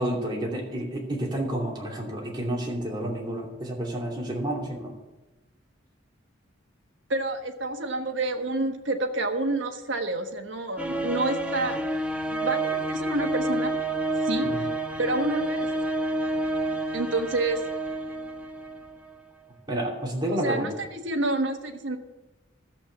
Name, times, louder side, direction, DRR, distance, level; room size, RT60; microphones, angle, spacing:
voice 1, 0.0-4.9 14.5-14.7 19.7-20.8, right 1 dB, 20° right, -2 dB, 2.8 m, -30 dB
voice 2, 7.1-11.8 12.3-13.7 14.2-14.5 15.0-15.7 16.9-17.6 20.3-22.0, right 2 dB, 70° right, 5 dB, 1.3 m, -28 dB
sound 1, 10.8-19.1, right 1 dB, 5° right, 0.9 m, -29 dB
13.5 x 7.4 x 7.0 m, 1.1 s
head